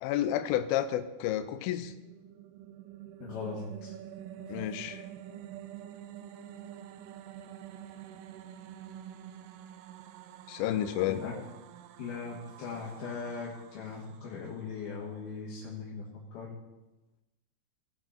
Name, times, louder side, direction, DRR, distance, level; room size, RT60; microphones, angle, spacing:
voice 1, 0.0-1.9 4.5-5.0 10.5-11.4, left 11 dB, 85° left, 10 dB, 2.2 m, -31 dB
sound 1, 1.8-15.1, right 10 dB, 85° right, 2.6 m, -47 dB
voice 2, 3.2-4.0 11.1-11.4 12.0-16.6, left 5 dB, 65° left, -6 dB, 3.2 m, -39 dB
18.5 x 6.2 x 4.4 m, 1.0 s
omnidirectional pair, 5.0 m